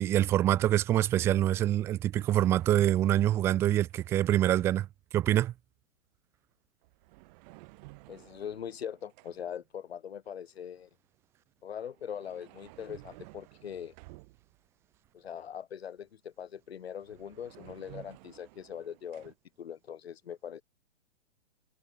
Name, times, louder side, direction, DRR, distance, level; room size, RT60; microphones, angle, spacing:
voice 1, 0.0-4.9 5.1-5.5, right 12 dB, 5° right, 0.4 m, -25 dB
sound 1, 2.1-4.8 6.8-9.6 11.8-14.7 16.6-16.7 16.9-19.3, right 26 dB, 35° right, 5.5 m, -54 dB
voice 2, 8.1-10.9 11.6-13.9 15.1-20.6, left 8 dB, 60° left, 3.4 m, -41 dB
figure-of-eight pair, 115°, 36 cm